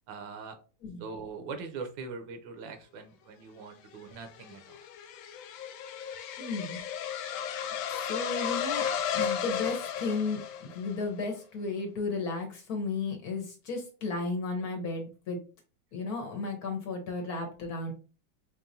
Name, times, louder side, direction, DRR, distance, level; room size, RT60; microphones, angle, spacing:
voice 1, 0.1-0.6 1.0-4.8, right 4 dB, 80° right, 6 dB, 1.4 m, -41 dB
sound 1, 3.9-11.0, left 8 dB, 80° left, 1.3 m, -34 dB
voice 2, 6.4-6.8 7.9-8.8 9.1-15.4 15.9-17.9, left 3 dB, 60° left, 2 dB, 1.3 m, -34 dB
4.7 x 3.0 x 2.6 m, 0.35 s
omnidirectional pair, 2.1 m